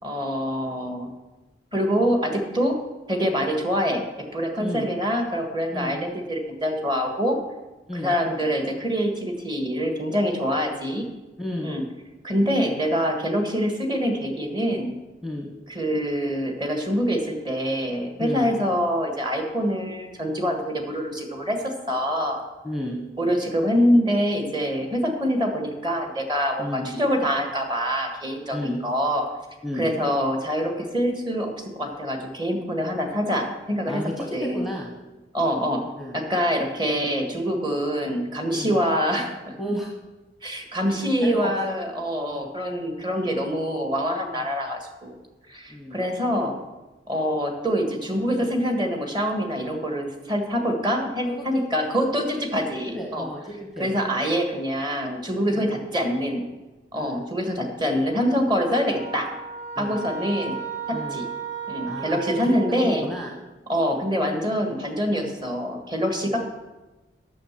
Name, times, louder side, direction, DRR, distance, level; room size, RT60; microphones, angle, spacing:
voice 1, 0.0-1.1 1.7-2.8 3.1-7.4 7.9-11.0 11.6-11.8 12.2-14.9 15.7-22.4 23.2-29.2 29.8-34.0 34.3-34.6 35.3-35.8 36.1-39.5 40.4-45.1 45.5-46.6 47.1-52.2 52.5-53.3 53.8-56.4 56.9-59.3 59.8-60.6 60.9-61.3 61.7-63.1 63.7-66.4, equal, 25° right, 4 dB, 1.5 m, -25 dB
voice 2, 4.6-4.9 5.7-6.0 7.9-8.1 11.4-11.7 15.2-15.5 18.2-18.5 22.6-23.0 26.6-26.9 28.5-28.8 29.6-29.9 33.9-34.9 36.0-36.2 38.5-38.8 39.6-39.9 41.2-41.5 45.7-46.0 51.3-51.7 52.2-52.3 52.9-53.9 55.5-55.7 56.9-57.2 59.8-60.0 60.9-61.2 61.9-62.5 62.8-63.3, left 1 dB, ahead, 0 dB, 1.0 m, -32 dB
sound 1, 58.9-63.3, right 5 dB, 65° right, 2.8 m, -35 dB
9.1 x 6.6 x 7.3 m, 1.1 s
head